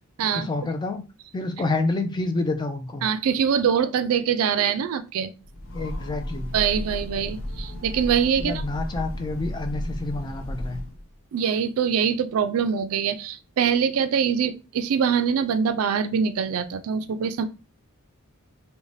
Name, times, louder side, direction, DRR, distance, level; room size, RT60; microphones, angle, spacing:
voice 1, 0.3-1.0 1.3-3.1 5.7-6.5 8.4-10.8, left 2 dB, 20° left, 6 dB, 0.3 m, -28 dB
voice 2, 3.0-5.3 6.5-8.6 11.3-17.4, right 7 dB, 70° right, 10 dB, 0.3 m, -24 dB
Train, 5.4-11.1, equal, 65° left, 0.6 m, -33 dB
2.6 x 2.1 x 3.1 m, 0.30 s
head